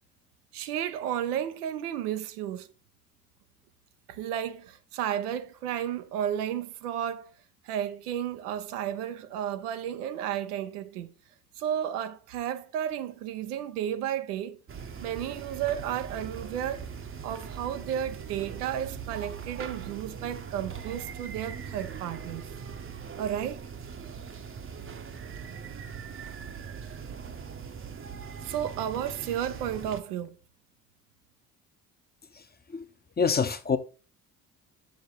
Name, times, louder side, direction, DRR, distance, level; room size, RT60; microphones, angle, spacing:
voice 1, 0.5-2.7 4.1-7.3 7.6-11.1 11.6-14.6 15.0-16.9 17.2-22.5 23.2-23.6 28.4-30.4, right 10 dB, 80° right, 0.8 m, -33 dB
sound 1, 14.7-30.0, right 6 dB, 25° right, 0.8 m, -41 dB
voice 2, 32.3-32.9 33.2-33.8, left 5 dB, 20° left, 0.9 m, -27 dB
6.4 x 5.3 x 4.4 m
hypercardioid pair, 50°, 46 cm